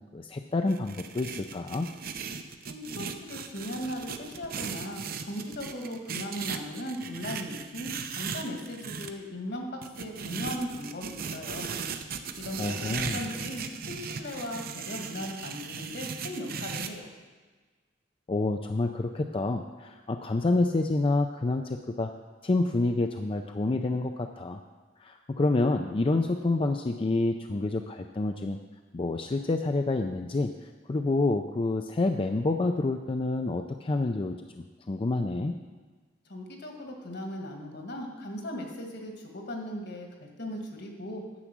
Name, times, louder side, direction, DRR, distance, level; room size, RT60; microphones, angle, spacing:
voice 1, 0.1-1.9 12.6-13.2 18.3-22.1 22.4-24.6 25.0-28.6 28.9-30.5 30.9-35.6, left 2 dB, 30° left, 5 dB, 0.4 m, -28 dB
sound 1, 0.7-9.1 9.8-16.9, right 6 dB, 55° right, 0.7 m, -37 dB
voice 2, 2.7-11.7 12.1-17.1 36.3-41.2, left 1 dB, 65° left, 2 dB, 1.9 m, -38 dB
10.0 x 7.4 x 6.1 m, 1.4 s
head